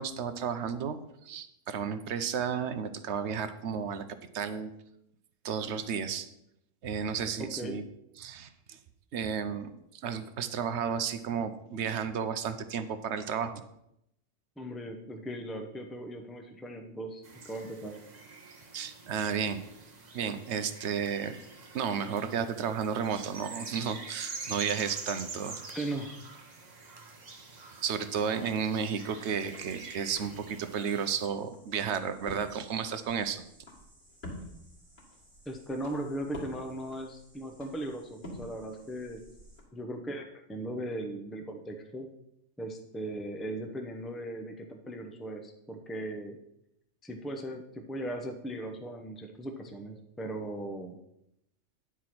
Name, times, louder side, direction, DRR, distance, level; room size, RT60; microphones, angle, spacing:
voice 1, 0.0-4.0 4.3-4.7 5.4-6.3 6.8-7.8 8.2-8.8 9.1-13.6 18.7-19.6 20.1-21.4 21.7-25.6 27.8-33.4, right 7 dB, 65° right, 10 dB, 0.9 m, -33 dB
voice 2, 7.4-7.8 14.6-18.0 25.7-26.2 35.5-39.2 39.7-42.1 42.6-46.4 47.0-51.0, right 1 dB, ahead, 4 dB, 0.6 m, -38 dB
sound 1, 17.2-31.3, right 3 dB, 35° right, 1.0 m, -46 dB
sound 2, 29.2-39.6, left 1 dB, 40° left, 2.7 m, -49 dB
10.0 x 4.7 x 5.9 m, 0.80 s
omnidirectional pair, 1.3 m